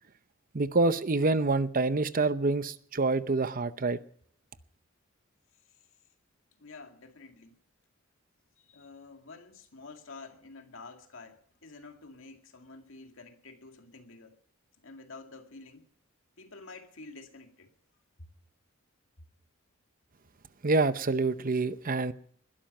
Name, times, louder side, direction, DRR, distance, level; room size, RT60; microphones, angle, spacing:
voice 1, 0.5-4.0 20.6-22.1, right 3 dB, 40° right, 0.7 m, -27 dB
voice 2, 6.6-7.6 8.6-14.4 14.8-15.9 16.4-17.7 18.2-18.3 19.2-19.3, left 3 dB, 70° left, 2.2 m, -49 dB
20.5 x 12.5 x 5.5 m
head